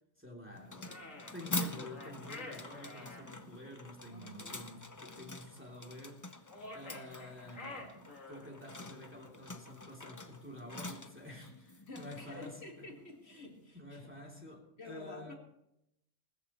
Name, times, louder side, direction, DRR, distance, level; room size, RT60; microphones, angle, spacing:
voice 1, 0.2-6.3 6.7-12.8 13.7-15.3, left 1 dB, 10° right, -2 dB, 2.9 m, -50 dB
sound 1, 0.5-13.6, left 2 dB, 20° left, 0.6 m, -46 dB
sound 2, 0.8-3.3 6.5-8.6, left 2 dB, 85° left, 2.6 m, -48 dB
voice 2, 4.1-4.7 11.9-14.1 14.8-15.3, left 2 dB, 55° left, 1 dB, 2.2 m, -50 dB
19.5 x 14.0 x 3.1 m, 0.82 s
omnidirectional pair, 1.3 m